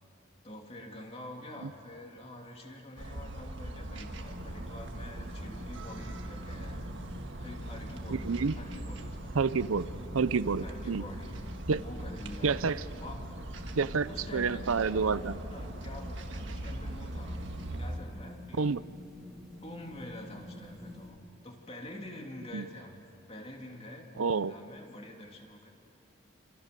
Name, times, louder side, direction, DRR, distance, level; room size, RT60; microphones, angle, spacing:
voice 1, 0.4-6.8 7.4-9.5 10.6-12.6 13.0-13.3 14.0-17.4 17.8-18.8 19.6-23.0 23.3-25.7, left 1 dB, 30° left, 1 dB, 2.8 m, -46 dB
sound 1, 3.0-18.0, right 1 dB, 65° right, 1.7 m, -41 dB
sound 2, 4.1-21.1, left 1 dB, ahead, 4.3 m, -49 dB
voice 2, 8.1-8.6 9.3-11.0 11.7-11.8 12.4-12.8 13.8-15.4 18.6-18.8 22.5-22.6 24.2-24.5, right 5 dB, 90° right, 16 dB, 0.6 m, -29 dB
28.0 x 27.0 x 6.8 m, 2.5 s
head